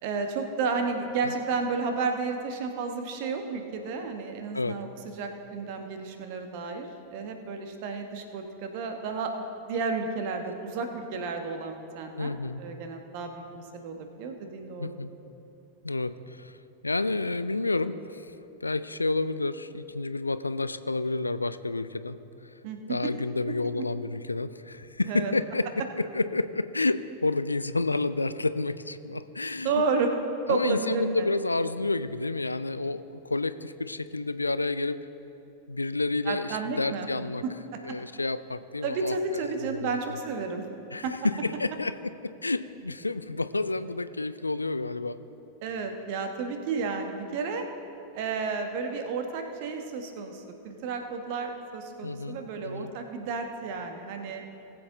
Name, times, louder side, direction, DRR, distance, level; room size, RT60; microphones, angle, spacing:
voice 1, 0.0-4.9 5.2-6.9 7.1-9.3 9.7-12.3 12.6-14.9 22.6-23.1 25.1-25.3 29.6-30.1 30.5-31.3 36.3-37.1 37.9-38.0 38.8-40.7 41.0-41.2 45.6-47.7 48.1-54.4, right 4 dB, 45° right, 5 dB, 1.2 m, -32 dB
voice 2, 12.2-12.6 14.8-15.1 15.8-16.6 16.8-22.2 22.9-29.8 30.5-35.0 35.7-37.4 37.8-39.2 39.6-40.0 40.9-45.2 52.0-52.9, left 3 dB, 80° left, 14 dB, 0.4 m, -30 dB
19.5 x 7.7 x 3.8 m, 2.9 s
figure-of-eight pair, 90°, 0 cm